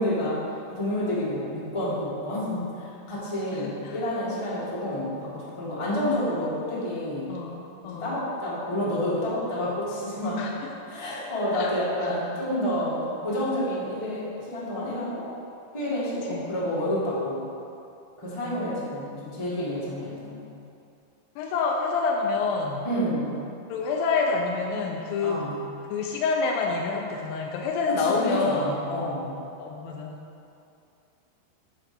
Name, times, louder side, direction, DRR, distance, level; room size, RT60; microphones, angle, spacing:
voice 1, 0.0-7.4 7.8-10.5 10.9-15.3 15.7-17.5 18.2-20.4 22.8-23.3 25.2-25.6 27.9-29.3, left 1 dB, 35° left, -9 dB, 0.5 m, -29 dB
voice 2, 3.5-4.0 7.3-8.2 10.4-10.7 11.5-11.8 16.3-16.4 18.5-18.6 21.4-22.9 23.7-25.4 25.9-28.7 29.6-30.2, left 4 dB, 80° left, -1 dB, 2.2 m, -27 dB
10.5 x 4.1 x 6.9 m, 2.6 s
omnidirectional pair, 4.6 m